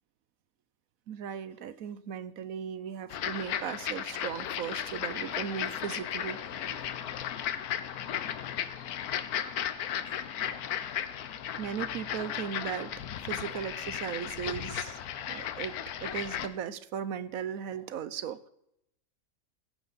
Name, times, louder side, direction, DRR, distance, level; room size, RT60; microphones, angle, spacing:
voice 1, 1.1-6.9 11.6-12.9 13.2-18.5, right 8 dB, 70° right, 15 dB, 1.1 m, -37 dB
sound 1, 3.1-16.5, left 10 dB, 80° left, 1.3 m, -35 dB
16.5 x 9.1 x 4.1 m, 0.78 s
omnidirectional pair, 1.6 m